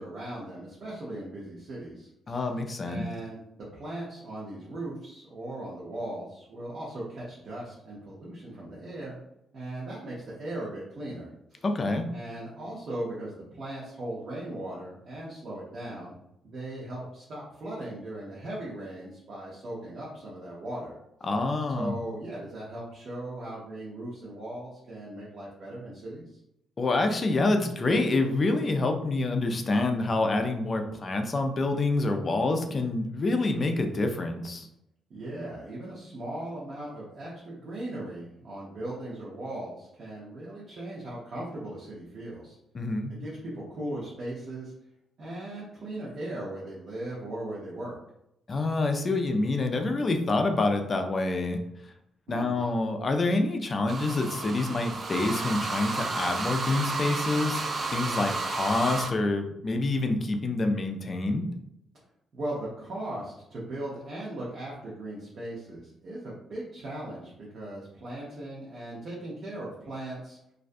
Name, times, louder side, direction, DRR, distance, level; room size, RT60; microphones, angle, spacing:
voice 1, 0.0-2.4 2.8-3.4 3.7-9.2 9.5-11.6 12.1-16.1 16.4-21.0 21.7-26.2 35.1-42.6 43.1-44.7 45.2-48.0 52.3-52.7 62.3-70.4, right 1 dB, 60° right, -6 dB, 0.7 m, -38 dB
voice 2, 2.3-3.1 11.6-12.1 21.2-22.0 26.8-34.7 42.7-43.1 48.5-51.6 52.3-57.6 57.9-61.5, left 2 dB, 35° left, 5 dB, 0.4 m, -27 dB
sound 1, 53.9-59.1, right 3 dB, 40° right, 0.3 m, -32 dB
2.4 x 2.2 x 2.5 m, 0.80 s
cardioid pair, 90°, 0 cm